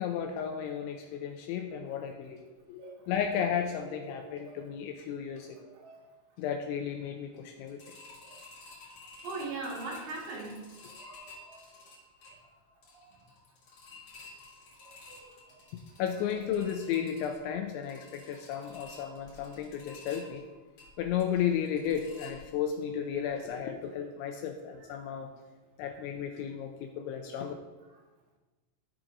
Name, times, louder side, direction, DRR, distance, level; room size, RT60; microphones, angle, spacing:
voice 1, 0.0-2.4 2.7-5.6 6.4-7.8 16.0-20.4 21.0-25.3 25.8-27.5, left 8 dB, 85° left, 4 dB, 2.7 m, -33 dB
voice 2, 4.1-4.7 5.5-6.0 8.3-8.4 9.2-10.6 11.0-11.6 12.9-13.1 15.1-15.4 23.8-24.0 24.8-24.9, right 3 dB, 75° right, -3 dB, 3.9 m, -41 dB
sound 1, 7.7-22.8 23.2-23.3 23.7-23.8, left 3 dB, 55° left, 2.3 m, -52 dB
13.5 x 6.0 x 2.5 m, 1.2 s
omnidirectional pair, 5.7 m